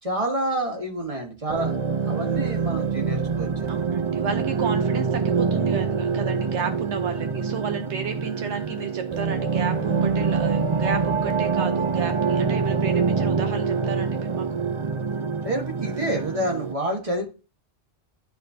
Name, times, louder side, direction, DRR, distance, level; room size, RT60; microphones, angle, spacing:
voice 1, 0.0-1.8 2.1-3.7 15.4-17.3, right 1 dB, 30° right, 2 dB, 1.6 m, -28 dB
sound 1, 1.5-16.7, right 5 dB, 45° right, 0.4 m, -25 dB
voice 2, 3.7-14.6, right 7 dB, 75° right, 7 dB, 1.0 m, -32 dB
11.5 x 4.3 x 2.7 m, 0.33 s
omnidirectional pair, 1.2 m